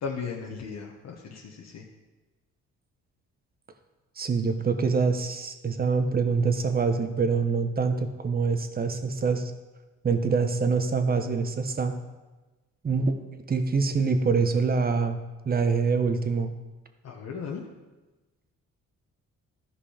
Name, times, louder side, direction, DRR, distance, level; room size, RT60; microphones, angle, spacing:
voice 1, 0.0-1.8 17.0-17.6, left 5 dB, 60° left, -1 dB, 1.3 m, -36 dB
voice 2, 4.2-9.5 10.0-12.0 12.8-13.2 13.5-15.2 15.5-16.5, right 4 dB, 30° right, 8 dB, 1.0 m, -25 dB
13.0 x 5.3 x 5.0 m, 1.2 s
cardioid pair, 90°, 30 cm